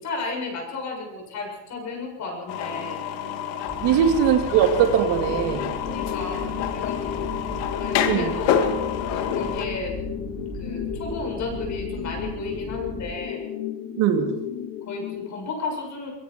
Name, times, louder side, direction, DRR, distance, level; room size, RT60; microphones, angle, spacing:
voice 1, 0.0-3.0 3.8-4.0 5.8-7.3 7.8-8.6 9.1-9.9 10.6-13.4 14.8-16.1, left 3 dB, 45° left, 1 dB, 7.4 m, -33 dB
sound 1, 2.5-9.7, left 8 dB, 85° left, 2.5 m, -28 dB
sound 2, 3.7-13.1, equal, 10° left, 6.0 m, -37 dB
voice 2, 3.8-5.7 8.1-8.3 14.0-14.3, right 8 dB, 85° right, 4 dB, 3.2 m, -20 dB
sound 3, 5.3-15.3, left 10 dB, 70° left, 3.3 m, -34 dB
24.0 x 23.0 x 4.7 m, 0.96 s
cardioid pair, 165°, 41 cm